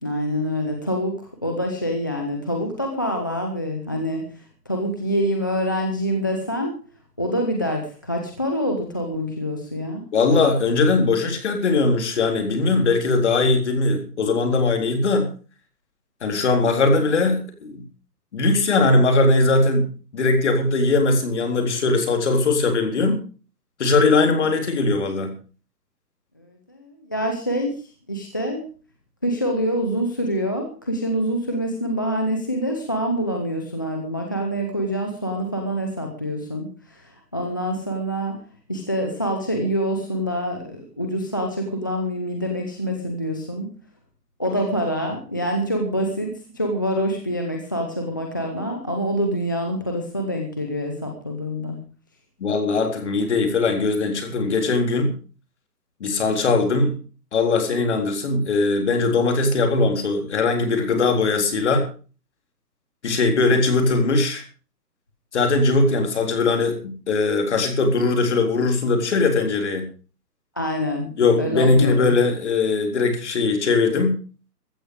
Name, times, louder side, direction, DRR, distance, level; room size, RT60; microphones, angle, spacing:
voice 1, 0.0-6.8 7.2-10.0 26.4-28.6 29.2-38.4 38.7-43.7 44.4-51.8 70.6-71.1 71.4-72.1, equal, 15° left, 1 dB, 0.7 m, -26 dB
voice 2, 10.1-15.3 16.2-17.8 18.3-23.2 23.8-25.3 52.4-55.1 56.0-57.0 57.3-61.9 63.0-64.4 65.3-69.9 71.2-74.2, left 3 dB, 45° left, 5 dB, 3.9 m, -20 dB
15.0 x 13.5 x 4.9 m, 0.38 s
hypercardioid pair, 170°, 49 cm